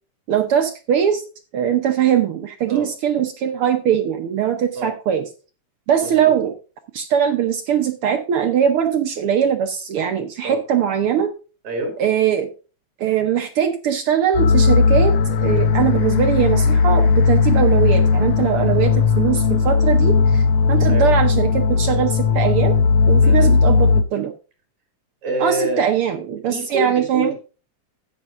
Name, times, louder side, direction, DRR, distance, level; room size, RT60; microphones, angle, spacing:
voice 1, 0.3-1.2 1.5-5.3 5.9-6.5 6.9-11.3 12.0-12.5 13.0-22.8 23.1-24.3 25.4-27.3, right 9 dB, 70° right, 6 dB, 1.4 m, -21 dB
voice 2, 6.0-6.5 10.4-10.6 11.6-11.9 18.6-18.7 20.8-21.1 23.2-23.6 25.2-25.8 26.5-27.3, right 2 dB, 50° right, 4 dB, 3.9 m, -27 dB
sound 1, 14.3-24.0, left 5 dB, 70° left, 1.7 m, -16 dB
13.0 x 9.2 x 2.5 m, 0.34 s
omnidirectional pair, 3.4 m